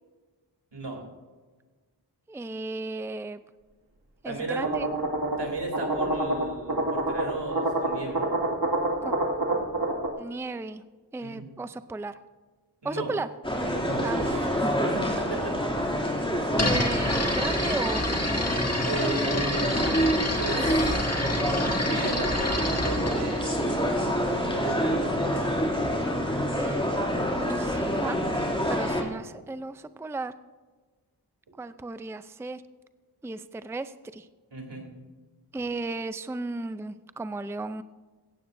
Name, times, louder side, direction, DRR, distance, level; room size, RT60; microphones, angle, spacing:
voice 1, 0.7-1.0 4.2-4.6 5.4-8.3 11.2-11.5 12.8-13.1 13.8-14.1 14.8-15.5 18.9-19.8 20.4-21.2 21.8-25.9 34.5-34.8, right 2 dB, 80° right, 1 dB, 3.2 m, -36 dB
voice 2, 2.3-3.4 4.2-4.9 9.0-9.1 10.2-10.8 11.1-12.2 12.8-13.3 14.0-14.7 16.6-18.4 26.5-26.9 27.4-30.3 31.6-32.6 33.2-34.3 35.5-37.8, right 3 dB, 5° right, 12 dB, 0.5 m, -35 dB
sound 1, 4.6-10.1, right 2 dB, 60° right, 2.2 m, -28 dB
sound 2, 13.4-29.0, equal, 10° left, 2.7 m, -27 dB
sound 3, 16.5-24.4, left 1 dB, 35° left, 2.2 m, -30 dB
16.5 x 15.0 x 2.7 m, 1.4 s
wide cardioid pair, 50°, 41 cm